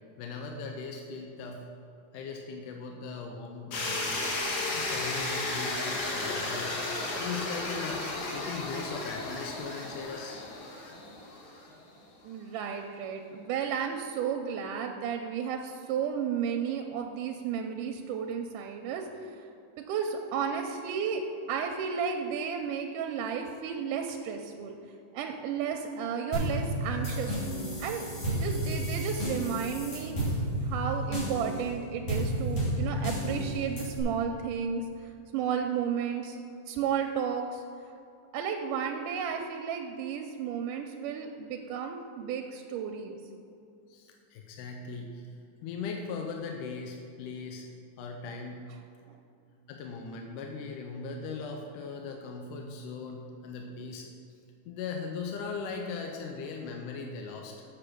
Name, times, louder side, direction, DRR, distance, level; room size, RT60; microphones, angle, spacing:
voice 1, 0.2-1.6 2.1-4.4 4.7-6.8 7.2-10.5 43.9-45.3 45.6-47.7 48.0-48.7 49.7-54.1 54.7-57.6, left 4 dB, 80° left, 2 dB, 2.1 m, -39 dB
sound 1, 3.7-11.7, left 2 dB, 60° left, 2.6 m, -34 dB
voice 2, 12.2-19.4 19.8-21.2 21.5-24.8 25.1-27.4 27.8-34.9 35.3-36.4 36.7-37.6 38.3-43.2 49.1-49.2, right 7 dB, 80° right, 4 dB, 2.0 m, -33 dB
sound 2, 26.3-34.0, right 1 dB, 45° left, 3.0 m, -32 dB
7.7 x 6.7 x 6.0 m, 2.6 s
omnidirectional pair, 4.1 m